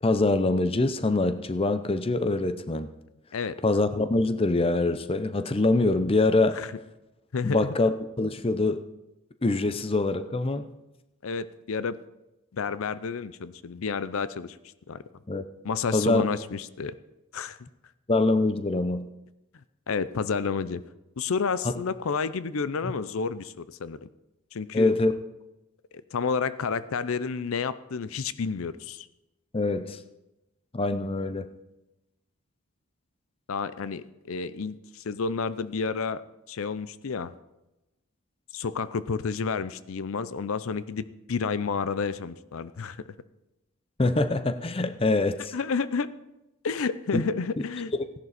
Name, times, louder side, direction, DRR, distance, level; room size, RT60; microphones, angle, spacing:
voice 1, 0.0-2.9 3.6-6.6 7.4-8.8 9.4-10.6 15.3-15.4 15.9-16.2 18.1-19.1 24.7-25.1 29.5-30.0 30.7-31.5 44.0-45.5 47.1-47.2, left 2 dB, 25° left, 10 dB, 0.6 m, -24 dB
voice 2, 7.3-7.7 11.2-12.0 12.5-14.6 14.9-15.0 15.6-16.9 17.3-17.6 19.9-20.8 21.2-24.1 24.5-24.9 25.9-29.1 33.5-36.2 36.5-37.3 38.5-43.0 44.8-44.9 45.5-46.1 46.6-47.9, left 5 dB, 70° left, 15 dB, 0.5 m, -30 dB
16.0 x 11.0 x 4.2 m, 0.96 s
head